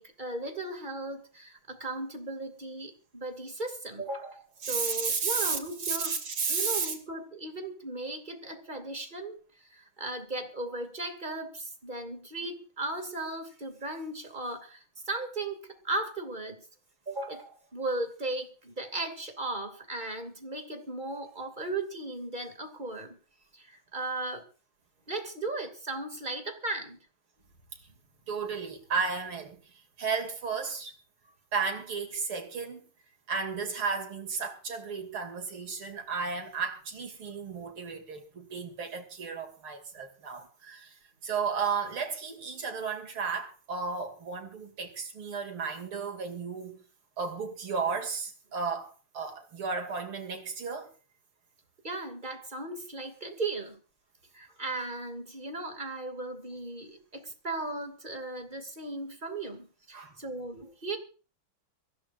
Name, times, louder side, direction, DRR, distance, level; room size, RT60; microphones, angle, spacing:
voice 1, 0.0-6.2 6.5-9.4 9.7-16.6 17.1-23.2 23.5-24.4 25.1-27.0 51.8-53.8 54.3-61.0, right 2 dB, 20° right, 2.6 m, -36 dB
voice 2, 4.6-7.0 28.3-29.6 30.0-31.0 31.5-32.9 33.3-46.8 47.2-50.9 59.9-60.2, right 5 dB, 85° right, 3.6 m, -33 dB
24.0 x 16.5 x 2.6 m
omnidirectional pair, 2.2 m